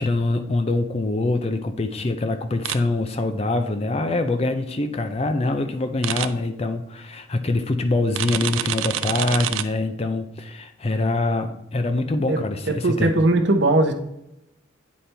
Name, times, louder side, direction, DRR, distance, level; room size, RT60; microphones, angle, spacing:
voice 1, 0.0-13.1, left 2 dB, 30° left, 8 dB, 0.4 m, -24 dB
sound 1, 2.6-2.8 6.0-6.3 8.1-9.6, right 12 dB, 75° right, 0.4 m, -26 dB
voice 2, 12.7-13.9, right 2 dB, 55° right, 6 dB, 0.7 m, -19 dB
9.2 x 4.3 x 3.3 m, 0.83 s
head